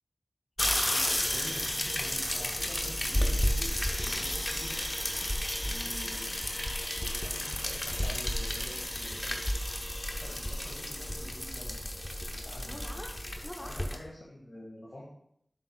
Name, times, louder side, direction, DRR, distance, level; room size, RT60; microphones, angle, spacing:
sound 1, 0.6-14.0, left 1 dB, 20° left, 0.8 m, -32 dB
voice 1, 0.8-4.8 5.6-9.4 10.1-11.8 12.3-13.1 13.6-15.0, left 1 dB, 55° left, -5 dB, 1.7 m, -47 dB
7.5 x 6.4 x 2.2 m, 0.71 s
wide cardioid pair, 65°, 0 cm